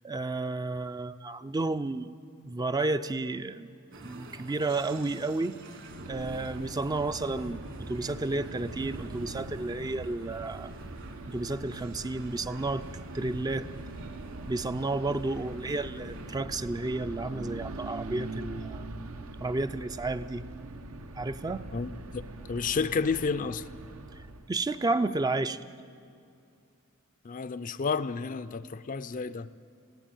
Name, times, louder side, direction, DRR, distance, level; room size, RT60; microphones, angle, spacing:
voice 1, 0.0-2.1 2.4-3.7 4.0-5.6 6.1-10.7 11.3-12.8 13.1-13.7 14.5-18.8 19.4-20.4 21.2-21.6 24.5-25.6, right 2 dB, 20° right, 11 dB, 0.4 m, -31 dB
sound 1, 3.9-16.4, right 2 dB, 60° right, 2.0 m, -49 dB
sound 2, 5.8-24.5, right 2 dB, 80° right, 1.0 m, -42 dB
voice 2, 21.7-22.2 22.5-23.7 27.2-29.5, left 5 dB, 40° left, 14 dB, 0.5 m, -31 dB
20.5 x 16.0 x 9.2 m, 2.5 s
head